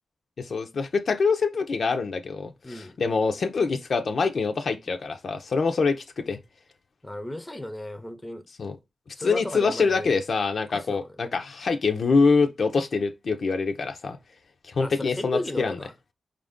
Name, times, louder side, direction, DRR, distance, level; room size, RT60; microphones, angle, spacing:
voice 1, 0.4-6.4 8.6-8.8 9.2-14.2 14.7-15.8, left 4 dB, 65° left, 0.5 m, -25 dB
voice 2, 2.6-3.0 7.0-8.4 9.2-10.2 10.7-11.1 14.8-15.9, left 1 dB, 15° left, 0.6 m, -35 dB
4.6 x 2.5 x 3.5 m
cardioid pair, 55°, 0 cm